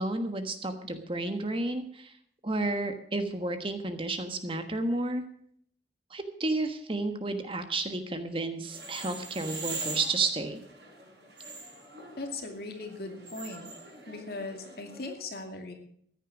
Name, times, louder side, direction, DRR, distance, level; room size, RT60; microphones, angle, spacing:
voice 1, 0.0-2.1 2.4-5.2 6.1-10.6, right 2 dB, 30° right, 8 dB, 1.3 m, -31 dB
sound 1, 8.6-15.1, right 3 dB, 70° right, 7.0 m, -42 dB
voice 2, 12.2-13.7 14.1-15.7, left 2 dB, 55° left, 4 dB, 2.5 m, -39 dB
14.5 x 9.9 x 6.1 m, 0.63 s
head